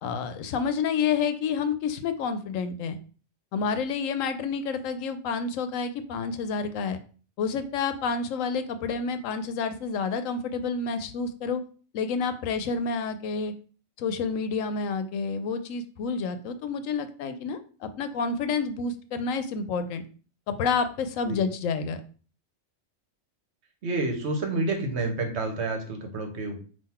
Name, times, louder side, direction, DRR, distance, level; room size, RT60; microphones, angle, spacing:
voice 1, 0.0-3.0 3.5-7.0 7.4-11.6 11.9-13.5 14.0-20.0 20.5-22.0, left 5 dB, 85° left, 10 dB, 1.0 m, -29 dB
voice 2, 23.8-26.6, right 2 dB, 65° right, 4 dB, 1.1 m, -29 dB
3.8 x 2.6 x 4.2 m, 0.39 s
omnidirectional pair, 1.3 m